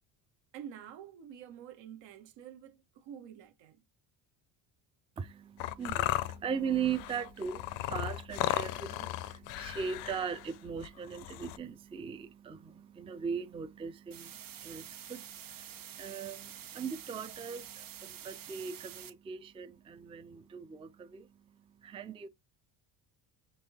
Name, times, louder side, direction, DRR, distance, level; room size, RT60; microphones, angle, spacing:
voice 1, 0.5-3.8, right 9 dB, 80° right, 1.4 m, -48 dB
voice 2, 5.2-22.3, right 7 dB, 15° right, 0.4 m, -39 dB
sound 1, 5.6-11.6, left 15 dB, 90° left, 0.6 m, -36 dB
sound 2, 14.1-19.1, right 10 dB, 50° right, 1.1 m, -48 dB
5.4 x 3.5 x 2.8 m
cardioid pair, 120°, 44 cm